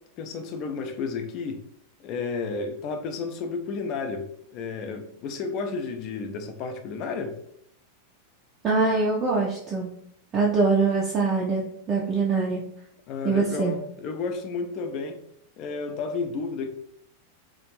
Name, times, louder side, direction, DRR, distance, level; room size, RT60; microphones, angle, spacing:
voice 1, 0.2-1.6 2.0-7.4 13.1-15.2 15.6-16.7, left 4 dB, 40° left, 0.4 m, -32 dB
voice 2, 8.6-9.9 10.3-12.6 13.2-13.7, right 4 dB, 25° right, 0.4 m, -23 dB
2.4 x 2.1 x 3.0 m
figure-of-eight pair, 90°, 0 cm